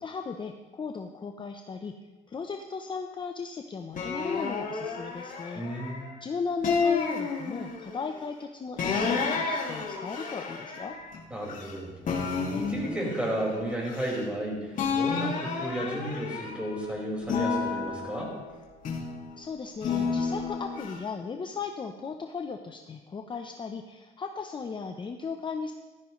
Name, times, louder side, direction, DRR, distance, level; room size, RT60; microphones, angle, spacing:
voice 1, 0.0-2.0 2.3-5.6 6.2-11.0 19.4-25.7, left 5 dB, 30° left, 5 dB, 0.8 m, -36 dB
sound 1, 3.9-6.1 6.6-8.0 8.8-11.7 12.0-14.4 14.7-16.8 17.2-19.2 19.8-20.9, left 5 dB, 50° left, 2.4 m, -31 dB
voice 2, 5.5-6.1 11.3-11.9 12.5-18.3, right 1 dB, 5° right, -3 dB, 5.1 m, -33 dB
15.5 x 14.0 x 3.2 m, 1.2 s
cardioid pair, 110°, 17 cm